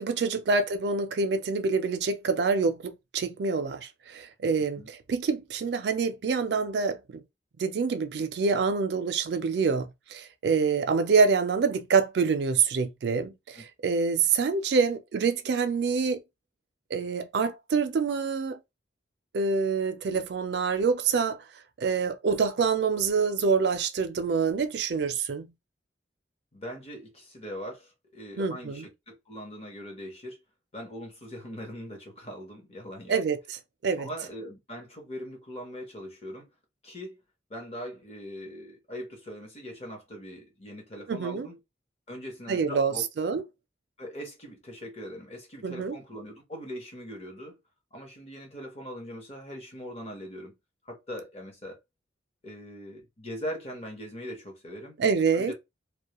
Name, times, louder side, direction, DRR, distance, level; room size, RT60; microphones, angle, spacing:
voice 1, 0.0-7.2 7.6-16.2 16.9-18.6 19.3-21.4 21.8-25.5 28.4-28.9 33.1-34.1 41.1-41.5 42.5-43.4 45.6-45.9 55.0-55.5, right 5 dB, 65° right, 0.4 m, -26 dB
voice 2, 26.5-30.4 30.7-33.2 34.0-36.5 36.8-37.2 37.5-41.6 42.1-43.4 44.0-47.6 47.9-50.5 50.8-51.8 52.4-55.0 55.3-55.5, equal, 35° left, 0.8 m, -41 dB
2.2 x 2.1 x 2.9 m
head